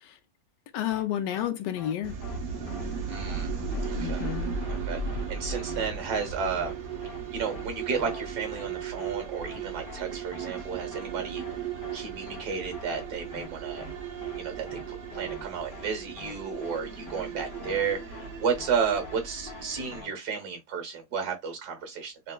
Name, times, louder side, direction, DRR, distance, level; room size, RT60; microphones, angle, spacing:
voice 1, 0.7-2.2 3.9-4.5, left 11 dB, 80° left, 1.2 m, -31 dB
sound 1, 0.9-1.0 1.3-1.5 1.8-1.9 2.2-2.4 2.7-2.8 3.1-3.4 3.7-3.9 4.2-4.3 4.6-4.8 5.1-5.2 5.5-5.8 6.1-6.3 6.6-6.7 7.0-7.2 7.5-7.6 7.9-8.2 8.5-8.7 9.0-9.1 9.4-9.6 9.9-10.0 10.3-10.6 10.9-11.1 11.4-11.5 11.8-12.0 12.3-12.4 12.7-13.0 13.3-13.5 13.8-13.9 14.2-14.4 14.7-14.8 15.1-15.4 15.7-15.9 16.2-16.3 16.6-16.8 17.1-17.2 17.5-17.8 18.1-18.3 18.6-18.7 19.0-19.2 19.5-19.6 19.9-20.1, left 5 dB, 45° left, 0.8 m, -45 dB
sound 2, 2.0-20.0, right 5 dB, 40° right, 0.8 m, -36 dB
voice 2, 3.1-3.6 3.8-4.3 4.7-5.0 5.3-6.7 7.3-11.4 11.9-13.9 14.4-22.3, right 6 dB, 65° right, 1.7 m, -32 dB
6.2 x 2.6 x 2.2 m
omnidirectional pair, 1.9 m